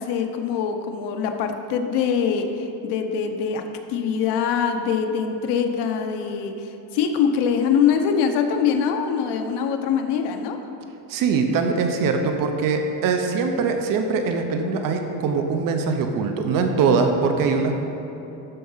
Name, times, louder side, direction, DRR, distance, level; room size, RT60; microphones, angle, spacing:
voice 1, 0.0-3.6 3.9-10.6, left 7 dB, 80° left, 5 dB, 1.0 m, -23 dB
voice 2, 11.1-17.8, right 4 dB, 55° right, 5 dB, 0.9 m, -22 dB
12.5 x 4.8 x 5.6 m, 3.0 s
cardioid pair, 155°, 40 cm